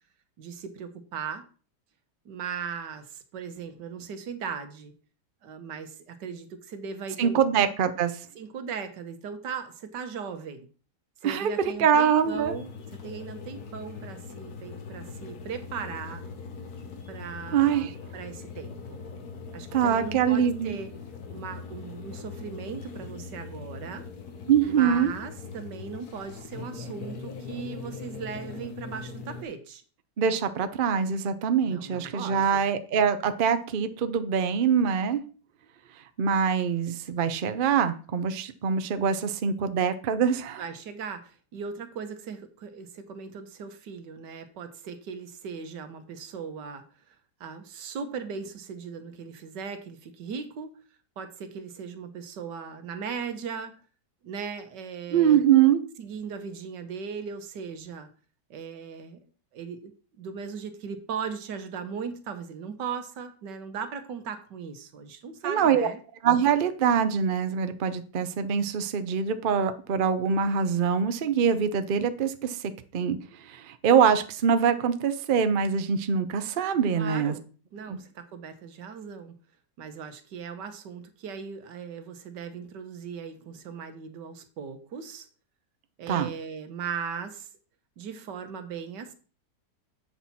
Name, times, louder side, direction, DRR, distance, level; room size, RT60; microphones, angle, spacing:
voice 1, 0.4-1.5 2.2-4.9 5.4-7.4 8.3-10.7 11.2-12.7 13.0-16.2 17.1-19.0 19.5-20.9 21.3-24.1 24.7-29.8 31.7-32.6 40.6-46.8 47.4-50.8 51.2-53.7 54.2-55.5 56.0-58.1 58.5-59.2 59.5-66.0 76.9-77.5 77.7-79.3 79.8-85.3 86.0-87.5 88.0-89.1, right 6 dB, 80° right, 8 dB, 1.6 m, -38 dB
voice 2, 7.2-8.1 11.2-12.5 17.5-17.9 19.7-20.8 24.5-25.1 30.2-35.2 36.2-40.6 55.1-55.8 65.4-65.9 66.2-72.6 72.9-73.2 73.4-77.3 77.9-78.0 86.1-86.3, right 7 dB, 60° right, 10 dB, 0.5 m, -24 dB
sound 1, 12.2-29.4, left 5 dB, 65° left, 1.6 m, -41 dB
7.9 x 5.9 x 4.1 m, 0.39 s
omnidirectional pair, 1.9 m